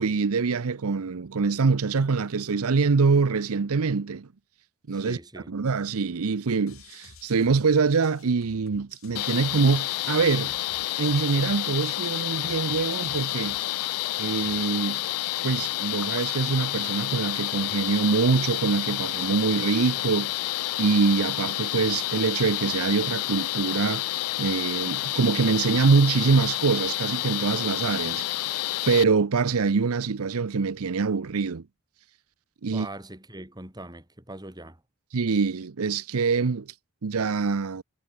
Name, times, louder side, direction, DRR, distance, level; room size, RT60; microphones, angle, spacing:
voice 1, 0.0-4.3 4.9-5.2 5.5-10.5 11.0-13.6 14.2-15.0 15.4-31.6 32.6-32.9 35.1-36.7 37.0-37.8, right 4 dB, 75° right, 0.6 m, -24 dB
voice 2, 4.9-5.5 32.7-34.8, right 1 dB, 20° right, 4.0 m, -41 dB
sound 1, 6.7-14.7, left 4 dB, 65° left, 2.9 m, -53 dB
sound 2, 9.2-29.0, left 16 dB, 85° left, 0.4 m, -29 dB
sound 3, 16.6-25.9, left 2 dB, 15° left, 6.5 m, -59 dB
head